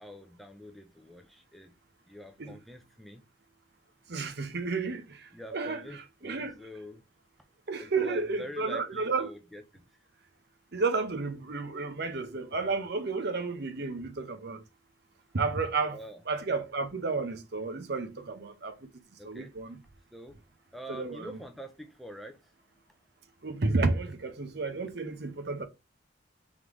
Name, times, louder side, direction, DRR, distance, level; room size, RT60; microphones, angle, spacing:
voice 1, 0.0-1.7 2.1-3.3 5.3-7.0 7.8-9.8 15.9-16.2 19.2-19.5 20.1-20.4 20.7-22.5, equal, ahead, 0.4 m, -46 dB
voice 2, 4.1-5.2 5.5-6.5 7.7-9.3 10.7-14.6 15.3-16.0 16.3-18.8 19.2-19.8 20.9-21.3 23.4-25.6, right 4 dB, 55° right, 0.7 m, -32 dB
3.6 x 3.3 x 3.5 m
head